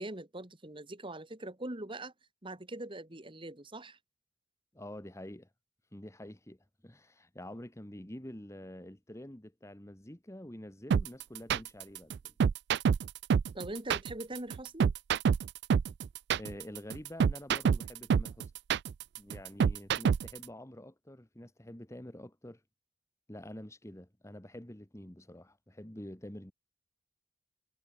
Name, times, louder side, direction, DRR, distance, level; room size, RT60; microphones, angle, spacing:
voice 1, 0.0-2.1 2.4-4.0 13.5-14.9, right 1 dB, 25° right, 2.1 m, -42 dB
voice 2, 4.7-5.5 5.9-6.6 6.8-12.3 16.4-18.5 19.2-22.6 23.3-26.5, left 1 dB, 15° left, 1.6 m, -47 dB
sound 1, 10.9-20.4, right 6 dB, 60° right, 0.3 m, -27 dB
head